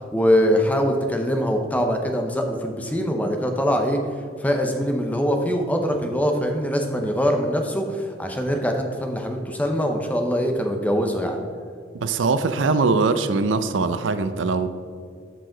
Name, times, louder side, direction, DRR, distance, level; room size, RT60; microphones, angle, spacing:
voice 1, 0.1-4.0 4.4-11.4, equal, 10° left, 3 dB, 0.7 m, -23 dB
voice 2, 11.9-14.7, right 4 dB, 85° right, 11 dB, 0.5 m, -22 dB
13.5 x 4.8 x 3.8 m, 2.2 s
head